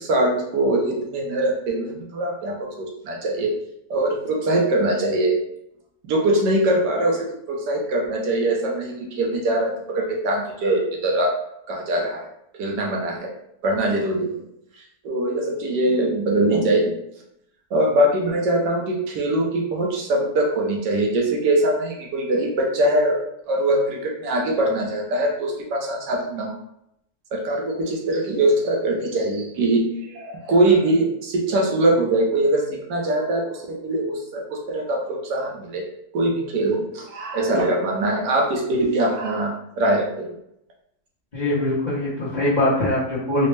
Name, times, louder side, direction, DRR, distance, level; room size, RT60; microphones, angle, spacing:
voice 1, 0.0-3.5 3.9-5.4 6.0-11.3 11.7-12.2 12.6-13.3 13.6-14.4 15.0-16.9 17.7-26.6 27.3-35.9 36.1-40.3, right 1 dB, 80° right, 0 dB, 1.4 m, -22 dB
voice 2, 41.3-43.5, left 1 dB, 40° left, -9 dB, 0.7 m, -22 dB
4.1 x 2.1 x 3.2 m, 0.78 s
omnidirectional pair, 1.8 m